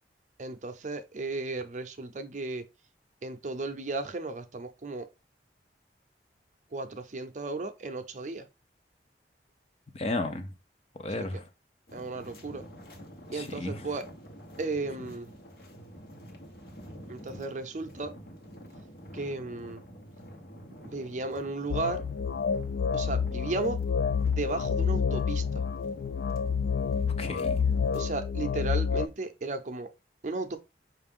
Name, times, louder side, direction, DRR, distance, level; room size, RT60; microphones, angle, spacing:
voice 1, 0.4-2.6 3.2-5.1 6.7-8.5 11.2-11.3 11.9-12.6 13.3-14.0 14.6-15.3 17.1-18.1 19.1-19.8 20.8-22.0 22.9-23.8 24.3-25.6 27.9-29.9 30.2-30.6, right 3 dB, 45° right, 0.6 m, -35 dB
voice 2, 9.9-10.5 11.0-11.5 13.3-13.9 27.2-27.6, left 2 dB, 35° left, 0.6 m, -33 dB
sound 1, 11.9-28.0, equal, 60° left, 1.1 m, -48 dB
sound 2, 21.7-29.1, left 6 dB, 75° left, 0.4 m, -28 dB
5.7 x 2.5 x 3.5 m
head